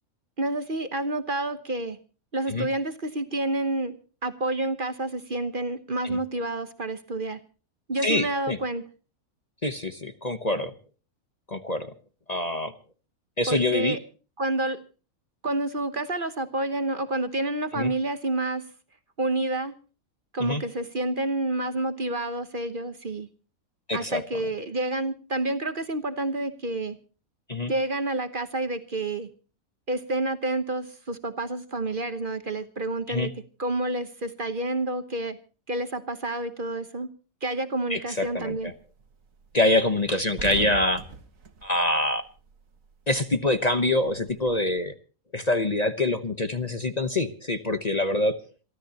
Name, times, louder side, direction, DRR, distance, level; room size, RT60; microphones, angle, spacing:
voice 1, 0.4-2.0 2.3-3.9 4.2-7.4 7.9-8.8 13.5-14.0 14.4-14.8 15.4-18.7 19.2-19.8 20.3-23.3 23.9-27.0 27.7-29.3 29.9-35.4 35.7-37.1 37.4-38.7, right 2 dB, 40° right, 10 dB, 1.2 m, -29 dB
voice 2, 8.0-8.6 9.6-10.7 11.5-11.9 12.3-12.7 13.4-14.0 17.7-17.9 20.4-20.6 23.9-24.2 27.5-27.7 33.1-33.3 37.9-38.7 39.5-41.0 41.6-42.2 43.1-44.9 45.3-48.4, left 2 dB, 30° left, 9 dB, 1.1 m, -25 dB
sound 1, 38.3-38.6 39.0-39.1 39.4-39.5 39.9-42.9 43.1-44.8, right 4 dB, 65° right, 2.0 m, -41 dB
27.5 x 13.0 x 2.9 m, 0.37 s
omnidirectional pair, 1.5 m